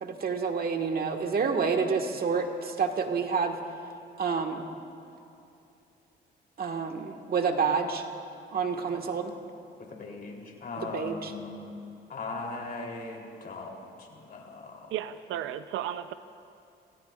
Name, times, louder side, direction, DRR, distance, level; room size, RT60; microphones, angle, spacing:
voice 1, 0.0-3.6 4.2-4.6 6.6-8.0 8.5-9.3 10.8-11.3, right 5 dB, 50° right, 4 dB, 1.5 m, -28 dB
voice 2, 9.8-11.7 12.1-15.0, left 3 dB, 50° left, 0 dB, 3.1 m, -39 dB
voice 3, 14.9-16.1, right 11 dB, 85° right, 12 dB, 0.5 m, -34 dB
26.5 x 16.5 x 2.4 m, 2.6 s
cardioid pair, 90°, 20 cm